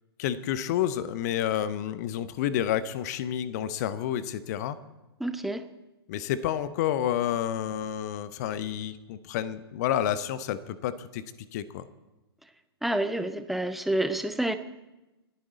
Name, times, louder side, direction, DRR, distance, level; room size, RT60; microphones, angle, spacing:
voice 1, 0.2-4.8 6.1-11.2 11.5-11.9, left 10 dB, 40° left, 15 dB, 0.8 m, -29 dB
voice 2, 5.2-5.7 12.8-14.6, right 1 dB, ahead, 10 dB, 0.8 m, -28 dB
29.5 x 10.0 x 4.1 m, 1.0 s
figure-of-eight pair, 110°, 13 cm